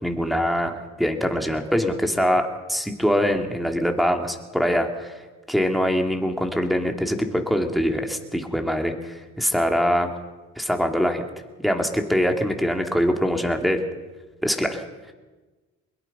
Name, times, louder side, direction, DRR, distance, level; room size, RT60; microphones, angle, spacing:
voice 1, 0.0-5.1 5.5-10.1 10.6-11.2 11.6-13.8 14.4-14.8, equal, ahead, 3 dB, 2.7 m, -23 dB
22.5 x 21.5 x 5.6 m, 1.2 s
cardioid pair, 90°, 30 cm